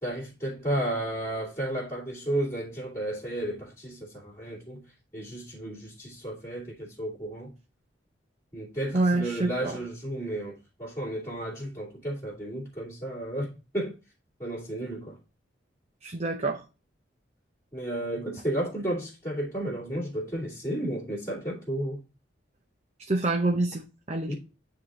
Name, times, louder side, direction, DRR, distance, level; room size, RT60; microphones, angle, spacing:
voice 1, 0.0-7.5 8.5-13.9 14.4-15.2 17.7-22.0 24.3-24.4, right 1 dB, 15° left, 2.6 m, -33 dB
voice 2, 8.9-9.8 16.0-16.6 23.0-24.3, right 2 dB, 35° right, 0.7 m, -27 dB
9.5 x 3.8 x 3.6 m
head